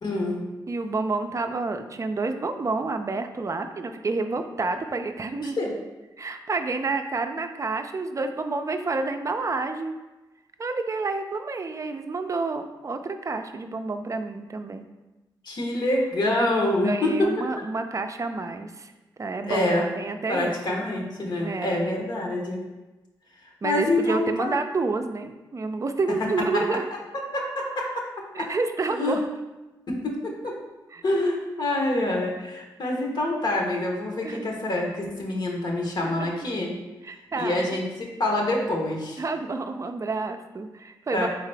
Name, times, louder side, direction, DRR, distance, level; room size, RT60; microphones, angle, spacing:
voice 1, 0.0-0.4 5.4-5.7 15.4-17.3 19.5-19.9 20.3-22.6 23.6-24.5 27.3-27.9 28.4-28.5 29.0-29.2 29.9-30.5 31.0-36.7 37.4-39.2 41.1-41.3, left 1 dB, 60° left, 0 dB, 1.0 m, -26 dB
voice 2, 0.7-5.6 6.2-9.9 10.6-14.9 16.8-18.9 19.2-20.8 21.4-21.8 23.6-26.9 28.3-29.3 30.9-31.0 34.2-34.5 36.2-36.5 37.0-37.8 39.2-41.3, right 3 dB, 40° right, 7 dB, 0.4 m, -29 dB
4.0 x 3.6 x 3.3 m, 1.1 s
supercardioid pair, 50°, 9 cm